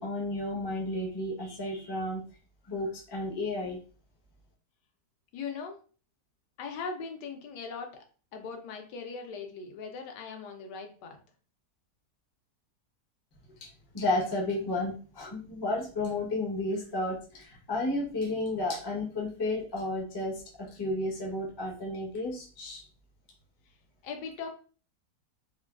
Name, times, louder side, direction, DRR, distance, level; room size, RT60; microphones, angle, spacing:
voice 1, 0.0-2.2 2.7-3.8 13.6-13.7 13.9-22.8, left 2 dB, 40° left, -2 dB, 0.3 m, -32 dB
voice 2, 5.3-5.8 6.6-7.9 8.3-11.2 24.0-24.5, left 5 dB, 85° left, 4 dB, 1.2 m, -39 dB
3.2 x 2.2 x 2.3 m, 0.39 s
omnidirectional pair, 1.8 m